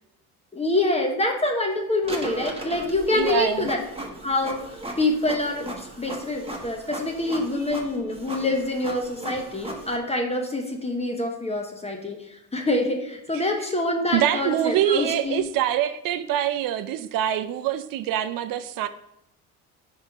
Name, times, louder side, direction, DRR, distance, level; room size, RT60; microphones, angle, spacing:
voice 1, 0.5-3.8 4.2-15.4, left 2 dB, 15° left, 2 dB, 1.0 m, -26 dB
Printer, 2.0-10.0, right 1 dB, 15° right, 1.2 m, -37 dB
voice 2, 3.1-3.7 13.3-13.4 14.1-18.9, right 11 dB, 65° right, 11 dB, 0.5 m, -25 dB
4.4 x 4.4 x 5.0 m, 0.82 s
supercardioid pair, 75°, 36 cm